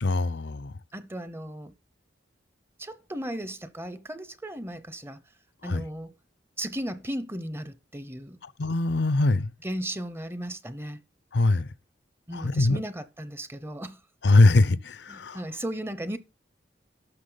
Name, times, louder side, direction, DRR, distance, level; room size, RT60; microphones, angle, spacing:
voice 1, 0.0-0.7 5.6-5.8 8.4-9.5 11.3-11.7 12.3-12.8 14.2-15.4, left 2 dB, 75° left, 0.6 m, -22 dB
voice 2, 0.9-1.7 2.8-5.2 5.6-6.1 6.6-8.4 9.6-11.0 12.3-14.0 15.1-16.2, right 1 dB, 15° right, 0.7 m, -36 dB
12.0 x 7.2 x 3.9 m
head